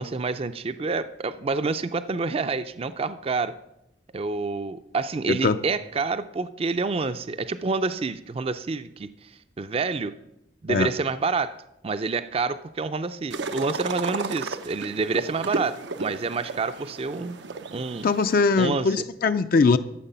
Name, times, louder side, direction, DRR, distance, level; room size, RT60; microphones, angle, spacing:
voice 1, 0.0-3.5 4.1-10.1 10.6-11.6 11.8-17.4 17.7-18.1 18.6-19.1, right 4 dB, 35° right, 12 dB, 0.4 m, -28 dB
sound 1, 13.3-18.4, right 3 dB, 85° right, 0.7 m, -34 dB
voice 2, 18.0-19.8, left 4 dB, 55° left, 10 dB, 0.4 m, -21 dB
13.0 x 7.3 x 5.6 m, 0.84 s
head